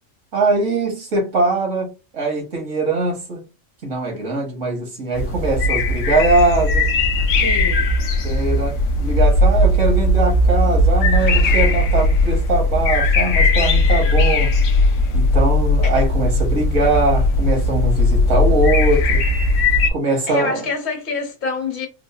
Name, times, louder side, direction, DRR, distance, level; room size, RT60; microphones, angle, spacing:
voice 1, 0.3-3.4 3.8-6.9 8.2-14.5 15.1-19.3 19.9-20.6, right 2 dB, 70° right, 1.6 m, -21 dB
sound 1, 5.1-19.9, left 2 dB, 75° left, 1.0 m, -17 dB
voice 2, 7.4-7.9 15.8-15.9 20.3-21.9, left 4 dB, 55° left, 1.3 m, -26 dB
3.7 x 2.4 x 2.4 m
omnidirectional pair, 1.4 m